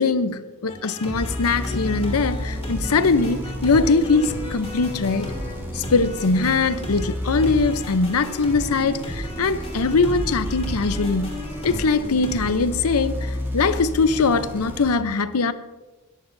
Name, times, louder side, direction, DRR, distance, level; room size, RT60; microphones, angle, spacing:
voice 1, 0.0-5.3 5.7-11.4 11.6-15.5, left 4 dB, 85° left, 0.7 m, -21 dB
sound 1, 0.7-12.5, left 1 dB, 30° left, 3.1 m, -34 dB
sound 2, 1.1-14.9, equal, 10° right, 2.1 m, -32 dB
21.0 x 14.0 x 2.7 m
head